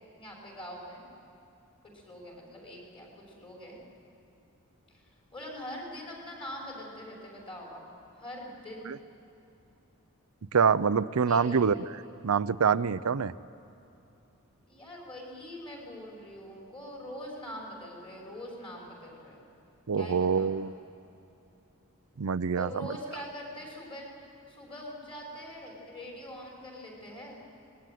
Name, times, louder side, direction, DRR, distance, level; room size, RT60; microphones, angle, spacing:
voice 1, 0.1-1.0 1.8-3.8 4.9-5.0 5.3-7.8 8.2-8.9 11.2-11.7 14.7-19.4 19.9-20.6 22.5-24.1 24.5-27.4, equal, 25° left, -2 dB, 6.0 m, -43 dB
voice 2, 10.5-11.7 12.2-13.3 19.9-20.7 22.2-22.9, right 6 dB, 85° right, 13 dB, 0.6 m, -25 dB
24.5 x 20.5 x 9.3 m, 2.9 s
head